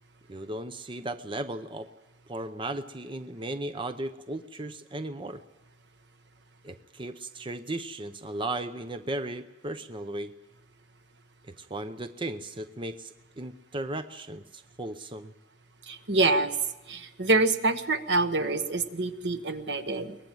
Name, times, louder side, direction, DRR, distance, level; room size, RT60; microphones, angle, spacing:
voice 1, 0.3-1.9 2.3-5.4 6.6-10.3 11.4-15.3, right 1 dB, 30° right, 10 dB, 0.7 m, -36 dB
voice 2, 15.9-16.5 16.9-20.2, right 2 dB, 70° right, 10 dB, 1.2 m, -26 dB
22.5 x 19.5 x 9.1 m, 1.0 s
head